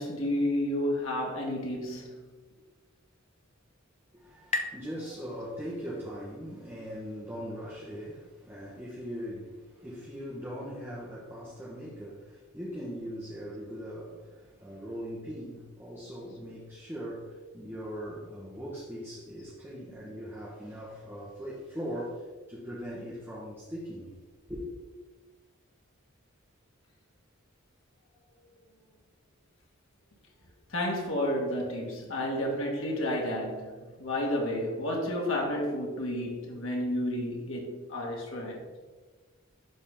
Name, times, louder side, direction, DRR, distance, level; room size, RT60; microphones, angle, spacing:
voice 1, 0.0-2.3 30.7-38.6, left 1 dB, 70° left, 1.9 m, -31 dB
sound 1, 3.1-6.4, left 3 dB, 35° left, 0.6 m, -40 dB
voice 2, 4.1-24.2 24.5-24.7, equal, 10° right, 1.2 m, -40 dB
11.5 x 3.9 x 3.7 m
head